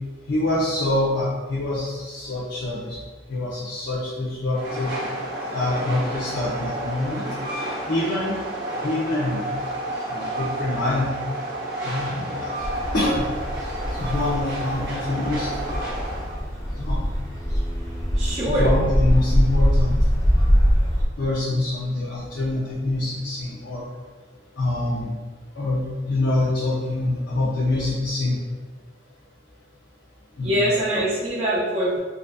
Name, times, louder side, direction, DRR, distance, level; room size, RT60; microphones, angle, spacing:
voice 1, 0.3-3.0 3.3-4.9 5.5-7.2 7.9-8.3 8.8-9.4 10.1-11.1 11.8-12.5 12.9-13.3 14.0-15.5 16.8-17.0 18.5-19.9 21.2-23.8 24.6-25.1 25.6-28.4 30.4-30.6, left 2 dB, 80° left, -9 dB, 0.8 m, -25 dB
Train, 4.5-16.4, right 1 dB, 65° right, 1.0 m, -31 dB
sound 1, 12.6-21.1, equal, 20° left, 0.8 m, -23 dB
voice 2, 18.2-18.7 30.4-32.0, right 1 dB, 40° right, -7 dB, 0.6 m, -23 dB
4.0 x 2.5 x 2.3 m, 1.3 s
head